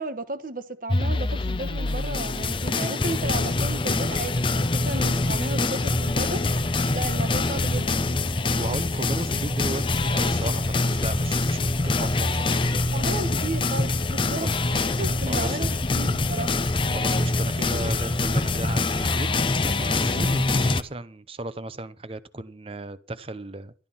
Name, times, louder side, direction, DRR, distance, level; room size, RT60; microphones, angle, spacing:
voice 1, 0.0-6.4 6.9-8.0 12.9-16.5, right 2 dB, 45° right, 1.2 m, -34 dB
sound 1, 0.9-20.8, left 2 dB, 25° left, 0.7 m, -24 dB
voice 2, 8.6-12.6 14.4-14.5 15.3-15.6 16.9-19.3 19.7-23.7, right 2 dB, 30° right, 0.8 m, -35 dB
13.0 x 10.5 x 5.6 m
head